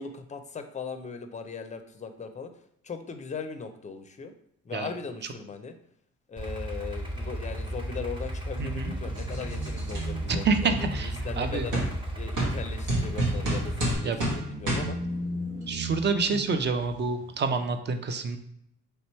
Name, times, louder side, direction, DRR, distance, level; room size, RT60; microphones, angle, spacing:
voice 1, 0.0-2.5 2.9-4.3 4.7-5.7 6.3-10.7 11.2-11.8 12.2-14.1 14.5-15.0, left 5 dB, 25° left, 8 dB, 0.5 m, -38 dB
Idling, 6.4-13.9, right 1 dB, 15° right, 1.0 m, -34 dB
voice 2, 8.6-8.9 10.3-11.7 14.0-14.2 15.7-18.4, right 4 dB, 35° right, 7 dB, 0.5 m, -28 dB
sound 1, 8.9-17.3, equal, 70° right, 1.3 m, -38 dB
sound 2, 9.2-10.0 10.7-10.8 11.7-11.9 12.4-12.6 12.9-14.4 14.7-14.9, right 1 dB, 85° right, 1.5 m, -28 dB
3.3 x 3.0 x 4.3 m, 0.76 s
cardioid pair, 90°, 30 cm